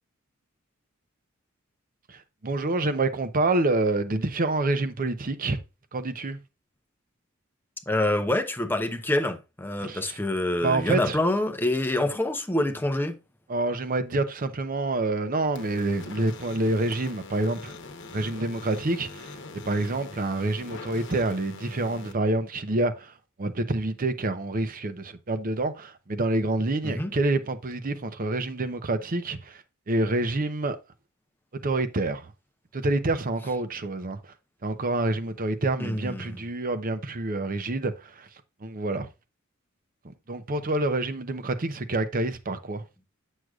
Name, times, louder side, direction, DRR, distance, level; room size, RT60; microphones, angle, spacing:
voice 1, 2.1-5.6 5.9-6.4 9.8-10.2 10.6-11.2 13.5-17.7 18.1-19.3 19.6-23.1 23.4-30.8 31.5-32.3 32.7-34.3 34.6-38.3 38.6-39.1 40.3-42.8, right 2 dB, 40° right, 0.7 m, -27 dB
voice 2, 7.9-13.2 26.8-27.1 35.8-36.4, left 1 dB, 10° left, 0.7 m, -26 dB
sound 1, 15.6-22.1, left 3 dB, 60° left, 1.0 m, -43 dB
7.8 x 6.4 x 2.3 m
head